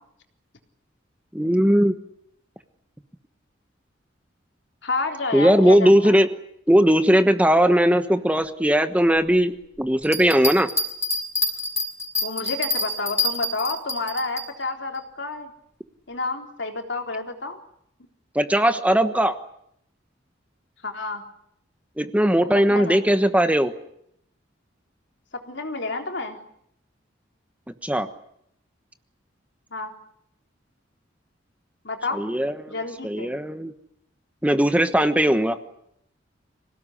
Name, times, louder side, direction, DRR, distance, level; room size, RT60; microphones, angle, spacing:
voice 1, 1.3-1.9 5.3-6.3 6.7-10.7 18.3-19.3 22.0-23.7 27.8-28.1 32.1-32.7 33.0-33.7 34.4-35.6, equal, 5° right, 9 dB, 1.2 m, -19 dB
voice 2, 4.8-6.2 12.2-15.5 16.1-17.6 20.8-21.2 22.7-23.0 25.3-26.4 29.7-29.9 31.8-32.3 32.7-33.3, left 3 dB, 65° left, 4 dB, 3.7 m, -30 dB
sound 1, 10.0-14.5, left 2 dB, 15° left, 5.5 m, -26 dB
26.5 x 18.0 x 9.9 m, 0.74 s
head